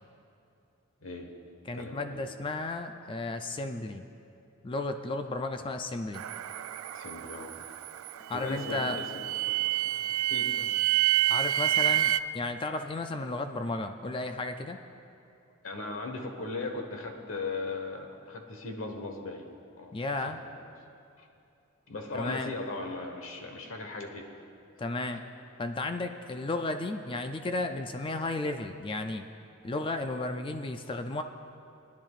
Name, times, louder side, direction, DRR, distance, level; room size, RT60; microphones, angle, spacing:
voice 1, 1.0-1.3 1.7-2.3 5.6-5.7 6.9-7.6 8.3-10.7 15.6-19.9 20.3-20.5 21.2-21.3 21.9-24.3 25.1-25.2, left 3 dB, 75° left, 3 dB, 1.2 m, -38 dB
voice 2, 1.7-4.0 4.6-6.2 8.3-9.0 11.3-14.8 19.9-20.4 22.1-22.5 24.8-25.2 25.6-29.2 29.6-31.2, left 2 dB, 25° left, 6 dB, 0.4 m, -33 dB
sound 1, 6.1-12.2, right 14 dB, 90° right, 0.3 m, -29 dB
22.5 x 10.5 x 2.4 m, 2.6 s
head